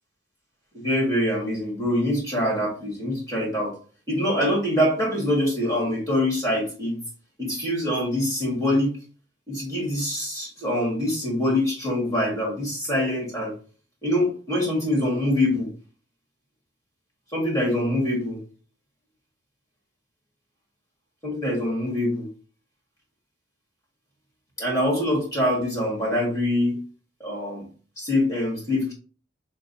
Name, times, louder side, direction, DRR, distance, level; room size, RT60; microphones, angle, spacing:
voice 1, 0.7-3.7 4.1-7.0 7.4-9.0 9.5-13.5 14.0-15.7 17.3-18.4 21.2-22.3 24.6-26.8 27.2-27.6 28.0-28.9, left 1 dB, 20° left, -2 dB, 1.8 m, -24 dB
6.4 x 2.3 x 2.6 m, 0.38 s
head